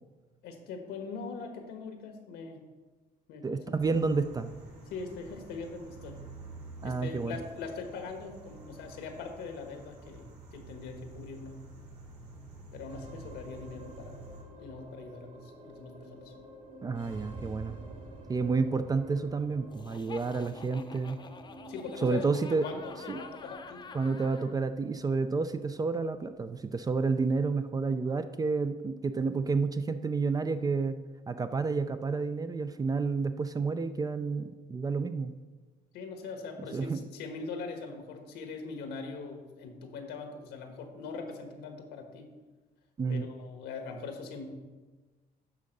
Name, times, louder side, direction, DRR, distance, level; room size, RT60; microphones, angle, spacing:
voice 1, 0.4-2.6 3.3-3.8 4.9-6.2 6.8-11.6 12.7-14.2 14.6-16.3 21.7-22.3 22.6-23.9 24.2-24.3 35.9-42.3 43.1-44.5, left 4 dB, 85° left, 4 dB, 1.4 m, -42 dB
voice 2, 3.4-4.5 6.8-7.4 16.8-17.8 18.3-21.2 22.0-22.7 23.1-23.2 23.9-31.0 31.3-35.3 36.7-37.0 43.0-43.3, right 4 dB, 20° right, 10 dB, 0.4 m, -30 dB
sound 1, 3.8-14.4, right 3 dB, 65° right, 2.9 m, -49 dB
sound 2, 12.9-31.4, right 1 dB, 45° right, 2.7 m, -51 dB
Laughter, 19.7-24.5, left 5 dB, 25° left, 0.6 m, -48 dB
10.5 x 3.7 x 6.5 m, 1.3 s
cardioid pair, 110°, 17 cm